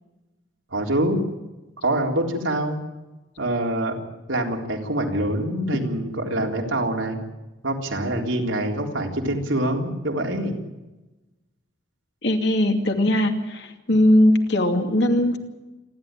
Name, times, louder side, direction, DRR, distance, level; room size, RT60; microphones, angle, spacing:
voice 1, 0.7-1.2 1.8-2.8 3.4-4.0 4.3-7.2 7.6-10.6, right 1 dB, 90° right, 1 dB, 3.8 m, -25 dB
voice 2, 12.2-15.4, left 1 dB, 60° left, 4 dB, 2.6 m, -19 dB
28.0 x 12.0 x 9.1 m, 1.1 s
head